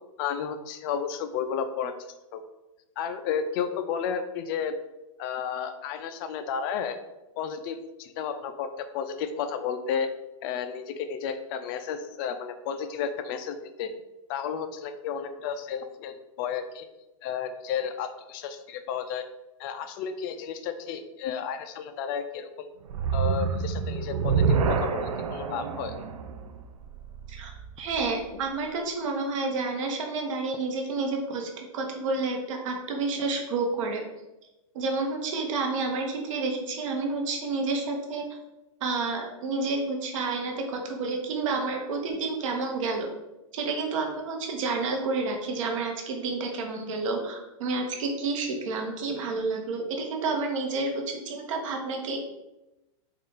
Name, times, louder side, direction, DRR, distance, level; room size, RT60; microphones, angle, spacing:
voice 1, 0.2-1.9 2.3-2.4 3.0-4.8 5.2-7.0 7.4-10.1 10.4-13.9 14.3-16.9 17.2-19.3 19.6-22.7 23.1-25.9, left 7 dB, 40° left, 9 dB, 0.3 m, -32 dB
sound 1, 22.9-28.2, right 5 dB, 90° right, 0.5 m, -28 dB
voice 2, 27.3-34.0 34.7-38.2 38.8-43.1 43.5-52.2, right 3 dB, 65° right, 2 dB, 0.9 m, -30 dB
3.7 x 2.4 x 3.9 m, 0.98 s
hypercardioid pair, 140°, 18 cm